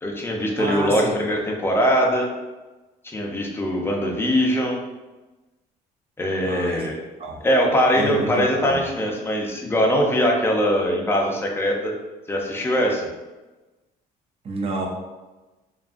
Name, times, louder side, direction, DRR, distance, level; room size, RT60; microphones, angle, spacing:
voice 1, 0.0-2.3 3.0-4.8 6.2-6.9 7.4-11.9 12.3-13.1, equal, 15° left, 0 dB, 0.5 m, -22 dB
voice 2, 0.6-1.1 6.4-6.8 7.2-7.4 7.9-8.8 14.4-14.9, right 1 dB, 35° right, 0 dB, 0.6 m, -28 dB
2.6 x 2.3 x 2.4 m, 1.1 s
cardioid pair, 110°, 17 cm